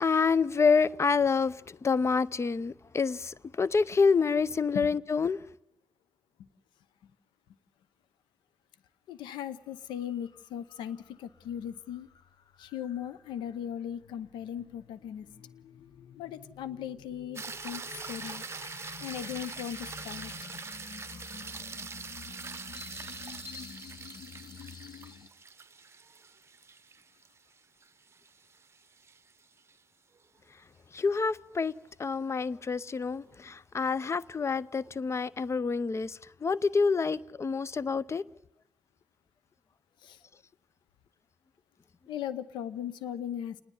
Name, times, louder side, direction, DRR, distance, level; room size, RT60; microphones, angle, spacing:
voice 1, 0.0-5.4 30.9-38.2, left 5 dB, 35° left, 0.7 m, -27 dB
voice 2, 9.1-12.1 12.6-15.3 16.2-18.4 19.0-20.3 40.0-40.2 42.1-43.6, left 9 dB, 90° left, 0.8 m, -38 dB
sound 1, 9.2-9.5 9.8-25.3, left 7 dB, 65° left, 0.9 m, -50 dB
sound 2, 17.4-29.8 34.2-34.3, right 5 dB, 35° right, 0.8 m, -43 dB
28.0 x 10.0 x 9.8 m
supercardioid pair, 65°, 8 cm